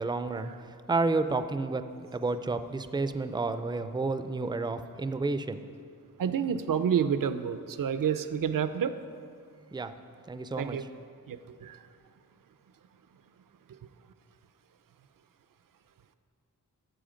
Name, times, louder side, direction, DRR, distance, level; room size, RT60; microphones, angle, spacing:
voice 1, 0.0-1.8 2.1-5.6 9.7-9.9 10.3-10.8, right 3 dB, 15° right, 10 dB, 0.4 m, -30 dB
voice 2, 6.2-9.0 10.6-10.9 11.3-11.8, right 8 dB, 65° right, 11 dB, 0.6 m, -29 dB
12.5 x 7.6 x 5.1 m, 2.4 s
wide cardioid pair, 85°, 36 cm